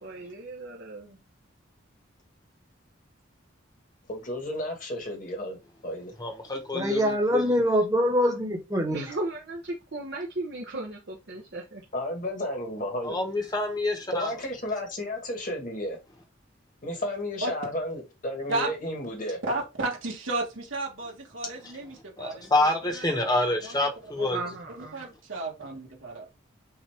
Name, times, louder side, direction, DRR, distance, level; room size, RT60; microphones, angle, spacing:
voice 1, 0.0-1.2 8.9-11.8 24.3-25.1, right 2 dB, 60° right, 0.9 m, -36 dB
voice 2, 4.1-5.6 5.8-6.1 11.9-13.1 14.1-16.0 16.8-19.4, left 1 dB, 40° left, 1.3 m, -32 dB
voice 3, 6.2-7.4 13.0-14.3 22.2-24.4, left 2 dB, 20° left, 1.0 m, -27 dB
voice 4, 6.7-9.1, equal, 20° right, 1.2 m, -24 dB
voice 5, 19.4-23.9 24.2-26.3, right 2 dB, 85° right, 1.6 m, -34 dB
5.8 x 2.6 x 3.4 m
head